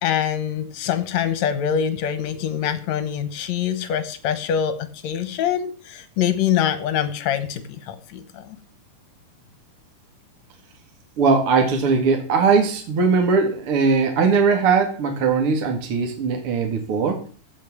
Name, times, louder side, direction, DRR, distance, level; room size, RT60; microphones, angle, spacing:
voice 1, 0.0-4.8 5.0-8.6, left 9 dB, 60° left, 12 dB, 2.2 m, -24 dB
voice 2, 11.2-17.2, right 5 dB, 45° right, 4 dB, 2.3 m, -20 dB
15.5 x 6.0 x 7.3 m, 0.40 s
omnidirectional pair, 4.1 m